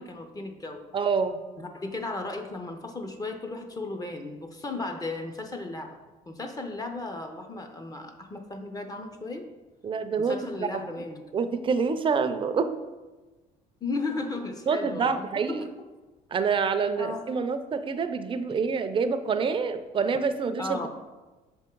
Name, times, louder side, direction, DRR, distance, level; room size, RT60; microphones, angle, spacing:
voice 1, 0.0-0.9 1.6-6.0 6.3-9.5 10.2-11.2 13.8-15.9 17.0-17.3 20.6-20.9, left 2 dB, 20° left, 4 dB, 0.6 m, -35 dB
voice 2, 0.9-1.4 9.8-10.4 10.7-10.8 11.3-12.7 14.7-15.7 16.3-20.9, right 5 dB, 30° right, 9 dB, 0.5 m, -27 dB
6.6 x 3.6 x 4.5 m, 1.2 s
cardioid pair, 110°, 17 cm